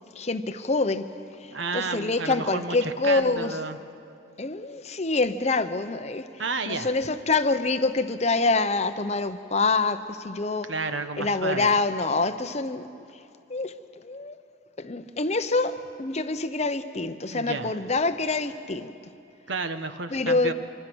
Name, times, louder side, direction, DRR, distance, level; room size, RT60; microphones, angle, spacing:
voice 1, 0.1-1.1 1.4-3.6 4.4-6.3 6.7-10.7 11.2-12.9 13.5-14.4 14.8-18.9 20.1-20.5, left 3 dB, 35° left, 10 dB, 0.7 m, -26 dB
voice 2, 1.5-3.8 6.4-6.9 10.6-11.7 17.3-17.7 19.5-20.5, right 3 dB, 65° right, 9 dB, 1.1 m, -31 dB
25.5 x 25.5 x 6.2 m, 2.5 s
head